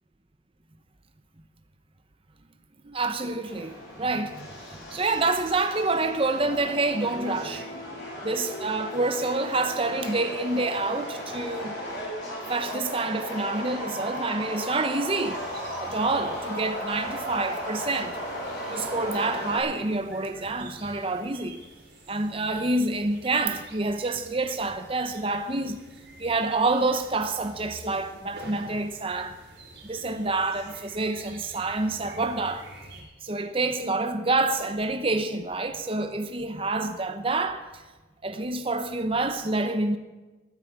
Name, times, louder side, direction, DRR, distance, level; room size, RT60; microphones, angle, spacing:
voice 1, 2.8-7.7 8.2-11.8 12.5-15.4 15.8-18.2 18.7-21.6 22.1-25.8 26.2-29.4 29.8-32.6 33.2-37.6 38.2-40.0, right 2 dB, 30° right, 0.8 m, -27 dB
Subway metro underground, 3.5-19.6, equal, 60° left, 6.1 m, -36 dB
sound 1, 15.2-33.0, right 2 dB, 60° right, 5.1 m, -49 dB
13.5 x 9.7 x 9.1 m
head